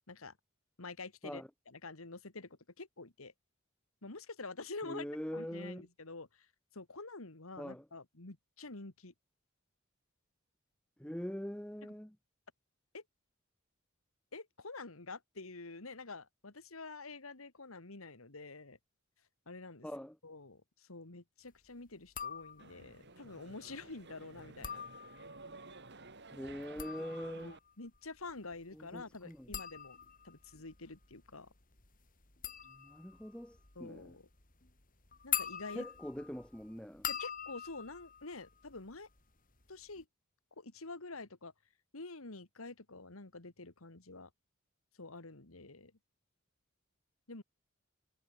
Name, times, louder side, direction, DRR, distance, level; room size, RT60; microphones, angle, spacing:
voice 1, 0.8-3.3 4.0-5.1 5.3-6.5 6.7-9.1 12.9-13.0 14.3-18.8 19.5-19.9 20.2-24.8 27.3-30.0 30.2-31.5 33.8-34.3 35.2-35.9 37.1-39.1 39.7-40.1 40.6-41.5 41.9-44.3 45.0-45.9 47.3-47.4, left 3 dB, 85° left, 2.2 m, -48 dB
voice 2, 4.8-5.9 7.6-7.8 11.0-12.2 19.8-20.2 26.3-27.5 28.7-29.5 32.7-34.1 35.7-37.1, equal, 5° left, 1.2 m, -43 dB
sound 1, 22.0-22.9 24.4-25.5 26.5-39.2 39.5-40.0, left 9 dB, 40° left, 3.7 m, -44 dB
sound 2, 22.6-27.6, right 3 dB, 55° right, 4.5 m, -53 dB
head